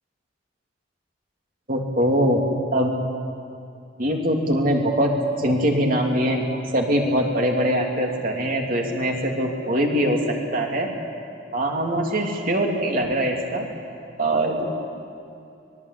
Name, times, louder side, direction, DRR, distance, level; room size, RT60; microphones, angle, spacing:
voice 1, 1.7-2.4 2.7-3.1 4.0-5.1 5.4-10.2 10.5-10.9 11.5-13.7 14.2-14.7, equal, 45° right, 1 dB, 3.2 m, -22 dB
24.5 x 21.0 x 8.6 m, 2.6 s
head